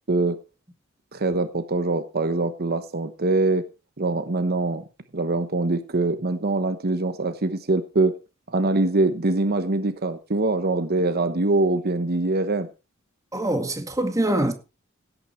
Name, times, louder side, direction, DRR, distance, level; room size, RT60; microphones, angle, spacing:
voice 1, 1.1-3.6 4.0-4.8 5.1-8.1 8.5-12.7, right 2 dB, 50° right, 1.0 m, -23 dB
voice 2, 13.3-14.5, right 1 dB, 15° right, 2.1 m, -24 dB
17.0 x 9.0 x 4.4 m
head